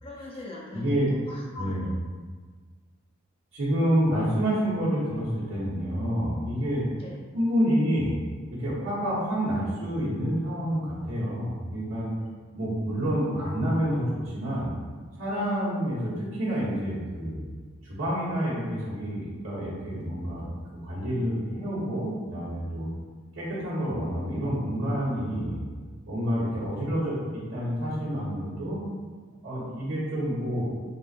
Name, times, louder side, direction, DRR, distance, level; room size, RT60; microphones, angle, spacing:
voice 1, 0.0-1.9 7.0-7.2 12.2-12.3 15.4-15.5, left 2 dB, 25° left, -4 dB, 0.6 m, -41 dB
voice 2, 0.7-1.1 1.6-1.9 3.5-6.8 7.3-8.2 8.5-12.1 12.5-14.7 15.2-17.4 17.8-20.5 20.8-22.9 23.3-25.6 26.1-28.8 29.4-30.8, equal, 65° right, -14 dB, 1.2 m, -28 dB
4.1 x 3.6 x 2.5 m, 1.5 s
head